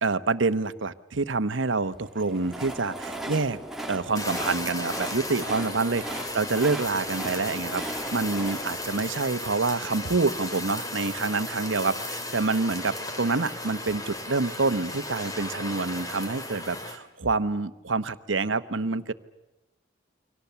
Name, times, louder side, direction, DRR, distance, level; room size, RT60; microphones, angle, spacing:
voice 1, 0.0-3.6 3.9-12.0 12.3-19.1, right 3 dB, 80° right, 12 dB, 1.1 m, -27 dB
Train, 2.0-10.1, right 1 dB, ahead, 1.9 m, -38 dB
Fire, 4.1-17.0, left 1 dB, 20° left, 2.8 m, -35 dB
29.5 x 24.5 x 7.0 m, 0.97 s
head